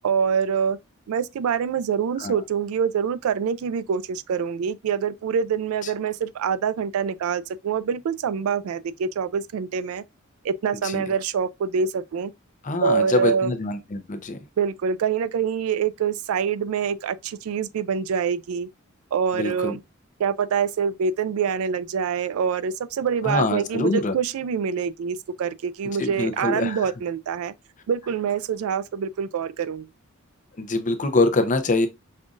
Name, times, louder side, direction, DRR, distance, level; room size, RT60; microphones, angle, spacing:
voice 1, 0.0-0.8 1.1-10.0 10.4-12.3 12.8-13.5 14.6-18.7 19.1-19.8 20.2-27.5 27.9-29.9, right 6 dB, 85° right, 0.3 m, -25 dB
voice 2, 12.6-14.4 19.3-19.8 23.2-24.1 26.0-26.9 30.6-31.9, left 2 dB, 35° left, 0.6 m, -24 dB
5.4 x 2.5 x 2.4 m
head